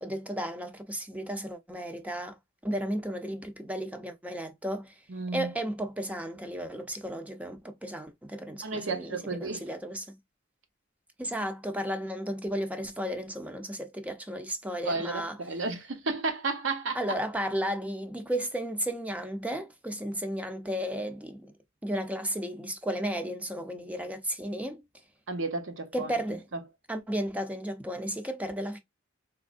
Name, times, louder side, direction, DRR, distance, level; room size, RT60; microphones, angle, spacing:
voice 1, 0.0-2.4 2.6-4.9 5.3-10.2 11.2-15.4 16.9-21.5 21.8-24.8 25.9-26.4 26.9-28.8, equal, 5° right, 0.5 m, -34 dB
voice 2, 5.1-5.5 8.6-9.7 14.8-17.0 25.3-26.1 26.5-26.6, right 3 dB, 65° right, 0.9 m, -32 dB
3.5 x 3.1 x 2.5 m
head